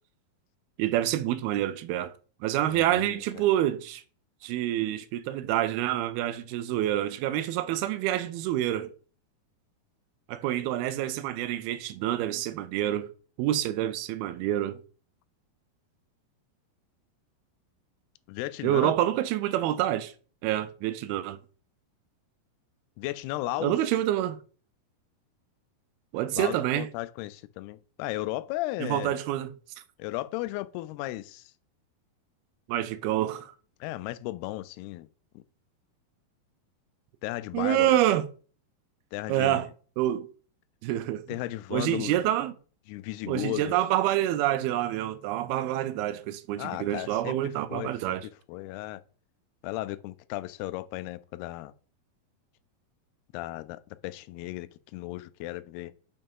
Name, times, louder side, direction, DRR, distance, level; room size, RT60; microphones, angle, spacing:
voice 1, 0.8-2.2 2.4-4.0 4.4-8.9 10.3-13.1 13.4-14.8 18.6-20.1 20.4-21.4 23.6-24.4 26.1-26.9 28.8-29.8 32.7-33.5 37.5-38.3 39.3-39.7 40.0-40.3 40.8-41.3 41.7-42.5 43.3-48.3, right 13 dB, 80° right, 2.5 m, -27 dB
voice 2, 2.7-3.5 18.3-18.9 23.0-23.7 26.3-29.2 30.0-31.5 33.8-35.1 35.4-35.5 37.2-38.0 39.1-39.6 41.3-42.1 42.9-43.7 46.6-47.4 47.7-47.9 48.5-49.0 49.6-51.7 53.3-55.9, left 17 dB, 90° left, 2.6 m, -35 dB
6.6 x 5.5 x 5.4 m
omnidirectional pair, 4.5 m